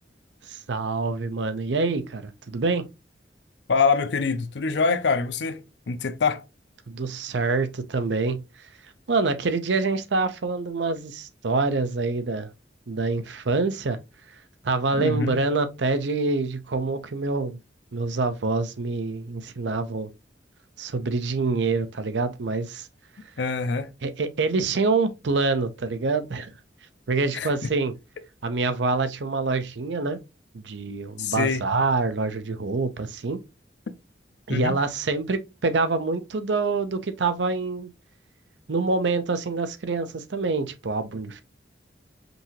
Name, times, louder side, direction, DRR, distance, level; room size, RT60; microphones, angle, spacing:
voice 1, 0.4-2.9 6.9-8.7 9.1-12.5 12.9-14.0 14.6-17.6 17.9-20.1 20.8-22.9 24.0-26.5 27.1-27.9 28.4-30.2 30.5-33.4 34.5-37.9 38.7-41.4, right 3 dB, 85° right, 0.6 m, -26 dB
voice 2, 3.7-6.4 15.0-15.4 23.4-23.9 27.3-27.7 31.2-31.6 34.5-34.7, left 5 dB, 75° left, 0.5 m, -25 dB
5.3 x 2.8 x 2.9 m
head